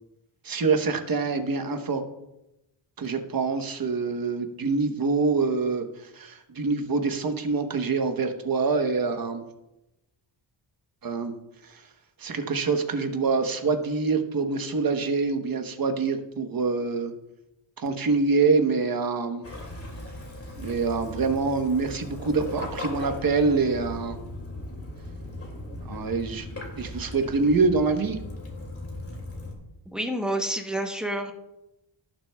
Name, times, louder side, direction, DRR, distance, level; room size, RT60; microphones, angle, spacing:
voice 1, 0.4-2.0 3.0-5.8 6.1-9.4 11.0-11.3 11.6-11.8 12.2-17.1 17.8-19.5 20.6-24.2 25.8-26.5 26.8-28.2, right 4 dB, 45° right, 6 dB, 1.1 m, -25 dB
Waves surf / Splash splatter / Trickle dribble, 19.4-29.5, left 1 dB, 30° left, 2.4 m, -38 dB
voice 2, 29.9-31.3, right 1 dB, ahead, 3 dB, 0.9 m, -28 dB
17.5 x 7.4 x 2.3 m, 0.92 s
wide cardioid pair, 145°, 47 cm